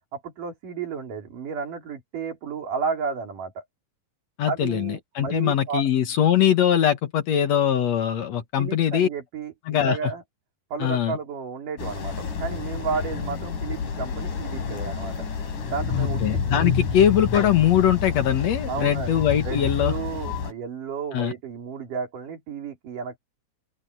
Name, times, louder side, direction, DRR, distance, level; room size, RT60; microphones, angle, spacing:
voice 1, 0.1-3.6 4.5-5.8 8.6-10.2 10.7-15.1 15.6-16.2 16.5-16.7 18.7-23.2, right 5 dB, 80° right, 4.8 m, -32 dB
voice 2, 4.4-9.1 9.7-10.1 10.8-11.2 15.9-20.0 21.1-21.3, left 10 dB, 60° left, 2.4 m, -22 dB
sound 1, 11.8-20.5, left 5 dB, 75° left, 5.1 m, -29 dB
open air
omnidirectional pair, 3.7 m